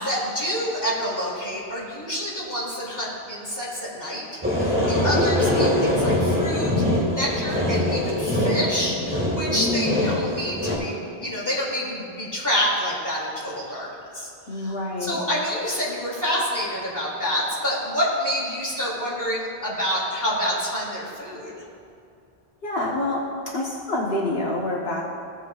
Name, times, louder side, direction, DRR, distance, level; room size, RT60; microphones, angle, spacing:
voice 1, 0.0-6.7 7.1-14.7 15.0-21.5, equal, 20° left, -6 dB, 2.5 m, -28 dB
sound 1, 4.4-10.8, left 1 dB, 10° right, 1.7 m, -23 dB
voice 2, 4.8-5.3 9.5-10.2 14.5-15.2 22.6-25.0, left 2 dB, 70° left, -3 dB, 1.3 m, -27 dB
16.0 x 8.0 x 2.3 m, 2.5 s
omnidirectional pair, 1.0 m